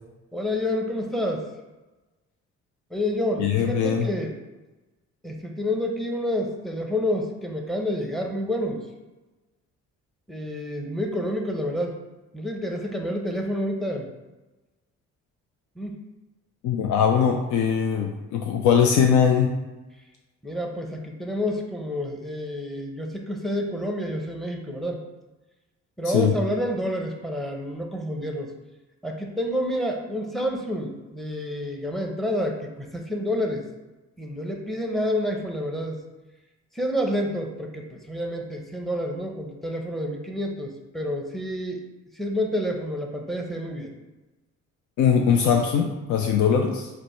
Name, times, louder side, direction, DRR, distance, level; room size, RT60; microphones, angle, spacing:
voice 1, 0.3-1.4 2.9-4.3 5.2-8.8 10.3-12.0 12.3-14.1 15.8-16.0 20.4-25.0 26.0-28.5 29.0-33.6 34.2-36.0 36.7-41.8 42.1-43.9, left 1 dB, ahead, 2 dB, 0.7 m, -28 dB
voice 2, 3.4-4.1 16.6-19.5 26.1-26.3 45.0-46.9, left 7 dB, 75° left, 3 dB, 0.5 m, -21 dB
5.1 x 2.2 x 4.4 m, 1.1 s
cardioid pair, 90°, 30 cm